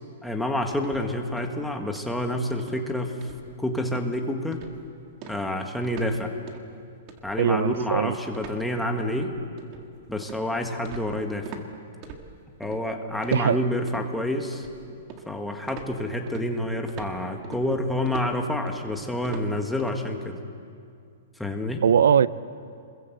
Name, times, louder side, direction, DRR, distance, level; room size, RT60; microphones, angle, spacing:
voice 1, 0.2-3.2 3.6-4.6 5.3-6.3 7.2-9.3 10.1-11.5 12.6-14.7 15.3-20.4 21.4-21.8, left 1 dB, ahead, 2 dB, 1.6 m, -28 dB
sound 1, 0.8-1.7 1.9-2.3 2.6-2.8 3.2-3.6 3.9-4.1 4.5-4.9 5.2-6.2 6.5-6.7 7.1-11.7 12.0-12.8 13.2-14.1 14.5-15.4 15.7-20.0, right 5 dB, 30° right, 2.0 m, -43 dB
voice 2, 7.4-8.1 13.3-13.6 21.8-22.3, right 8 dB, 85° right, 18 dB, 0.6 m, -20 dB
28.0 x 21.5 x 8.0 m, 2.4 s
hypercardioid pair, 165°, 0 cm